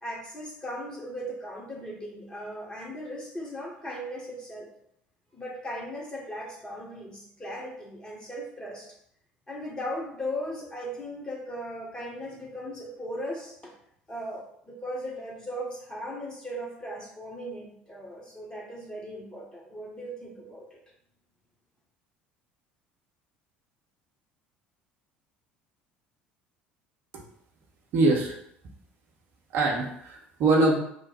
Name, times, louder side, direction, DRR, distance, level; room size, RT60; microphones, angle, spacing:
voice 1, 0.0-4.7 5.3-8.9 9.5-13.7 14.1-20.8, equal, 15° left, -3 dB, 1.2 m, -37 dB
voice 2, 27.9-28.3 29.5-30.8, right 2 dB, 50° right, -1 dB, 0.7 m, -23 dB
3.1 x 2.1 x 4.1 m, 0.71 s
figure-of-eight pair, 60°, 5 cm